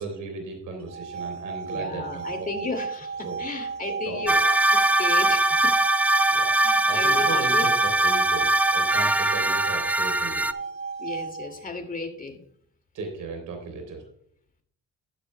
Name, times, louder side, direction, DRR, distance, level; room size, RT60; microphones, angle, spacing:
voice 1, 0.0-2.5 3.2-3.4 4.0-4.4 6.3-6.5 6.9-7.7 8.0-10.5 12.9-14.0, right 4 dB, 90° right, 4 dB, 3.4 m, -36 dB
sound 1, 0.8-11.8, right 5 dB, 50° right, 2.1 m, -34 dB
voice 2, 1.7-4.3 4.7-5.8 6.6-7.7 11.0-12.4, left 3 dB, 30° left, 5 dB, 2.2 m, -34 dB
sound 2, 4.3-10.5, right 2 dB, 5° right, 0.4 m, -21 dB
12.0 x 11.0 x 2.2 m, 0.65 s
cardioid pair, 90°, 30 cm